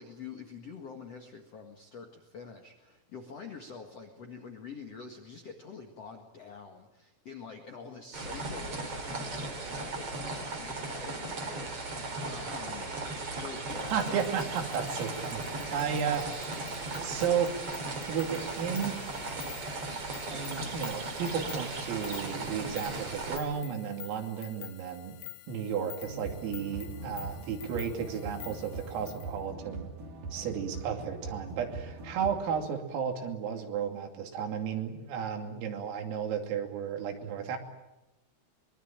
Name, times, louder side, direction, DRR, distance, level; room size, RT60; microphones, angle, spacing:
voice 1, 0.0-14.3, left 5 dB, 65° left, 3 dB, 1.5 m, -46 dB
sound 1, 8.1-23.4, right 2 dB, 30° right, 3.8 m, -37 dB
sound 2, 13.7-29.4, left 17 dB, 90° left, 3.9 m, -49 dB
voice 2, 13.9-16.6 17.0-17.6 18.1-19.0 20.3-25.2 25.5-29.9 30.3-37.6, right 7 dB, 80° right, 4 dB, 5.3 m, -33 dB
sound 3, 26.0-32.4, right 3 dB, 45° right, 4.1 m, -42 dB
24.0 x 23.0 x 8.9 m, 0.96 s
omnidirectional pair, 5.9 m